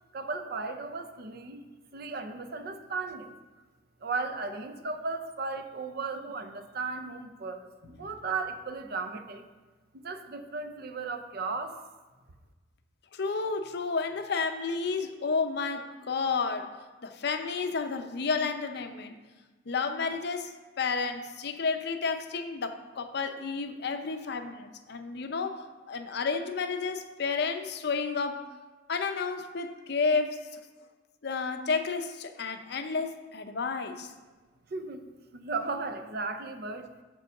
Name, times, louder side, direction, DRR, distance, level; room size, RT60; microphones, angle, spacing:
voice 1, 0.1-3.3 4.0-9.5 9.9-11.8 34.7-35.1 35.3-36.9, right 4 dB, 55° right, 8 dB, 0.6 m, -36 dB
voice 2, 13.1-16.7 17.0-19.2 19.7-28.5 28.9-30.6 31.2-34.1, left 4 dB, 60° left, 7 dB, 0.6 m, -31 dB
6.7 x 4.6 x 6.3 m, 1.3 s
head